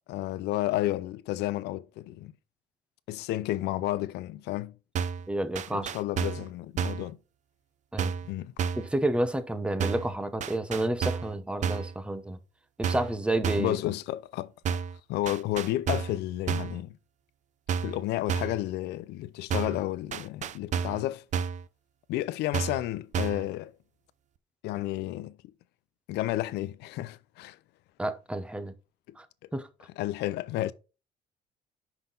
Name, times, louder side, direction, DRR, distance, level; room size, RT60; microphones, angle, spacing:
voice 1, 0.1-2.3 3.1-4.7 5.7-7.2 8.3-8.5 13.6-14.8 15.1-17.0 17.8-21.2 22.1-23.7 24.6-25.4 26.1-27.6 30.0-30.7, left 15 dB, 85° left, 0.6 m, -31 dB
sound 1, 5.0-5.3 5.6-6.5 6.8-7.1 8.0-8.3 8.6-8.9 9.8-10.1 10.4-11.3 11.6-11.9 12.8-13.2 13.4-13.8 14.7-15.0 15.3-16.2 16.5-16.8 17.7-18.0 18.3-18.6 19.5-19.8 20.1-21.0 21.3-21.7 22.5-22.9 23.1-23.5, right 7 dB, 45° right, 0.5 m, -31 dB
voice 2, 5.3-5.9 7.9-8.1 8.8-12.4 12.8-13.8 28.0-28.7 29.2-29.3 29.5-29.7, right 1 dB, 5° right, 0.8 m, -30 dB
5.8 x 5.7 x 3.9 m
cardioid pair, 110°, 17 cm